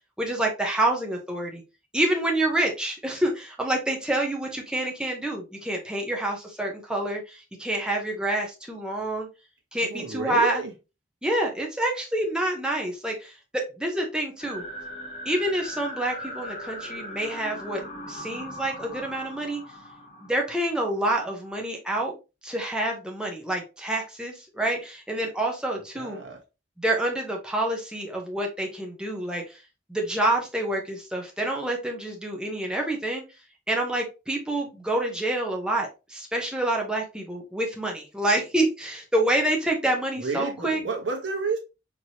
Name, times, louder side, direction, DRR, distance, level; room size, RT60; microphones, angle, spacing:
voice 1, 0.2-1.6 1.9-9.3 9.7-10.6 11.2-14.6 15.2-19.6 20.2-22.1 22.4-26.2 26.8-29.6 29.9-33.2 33.7-40.8, right 1 dB, 5° right, 0.8 m, -27 dB
voice 2, 9.8-10.7 25.9-26.4 40.2-41.6, right 4 dB, 75° right, 1.1 m, -30 dB
sound 1, 14.4-21.3, left 1 dB, 30° left, 1.0 m, -40 dB
4.5 x 2.9 x 2.8 m
head